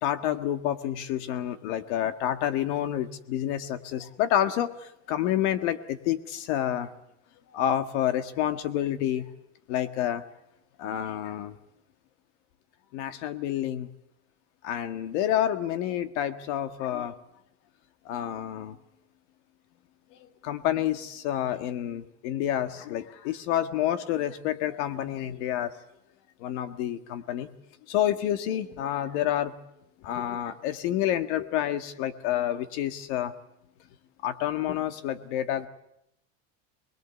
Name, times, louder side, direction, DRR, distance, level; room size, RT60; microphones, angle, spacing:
voice 1, 0.0-6.9 7.5-9.3 9.7-10.2 10.8-11.6 12.9-13.9 14.6-17.2 18.1-18.8 20.4-25.7 26.4-27.5 27.9-29.5 30.0-33.3 34.2-35.7, left 11 dB, 75° left, 10 dB, 1.8 m, -29 dB
24.5 x 21.0 x 8.3 m, 0.80 s
cardioid pair, 155°, 35 cm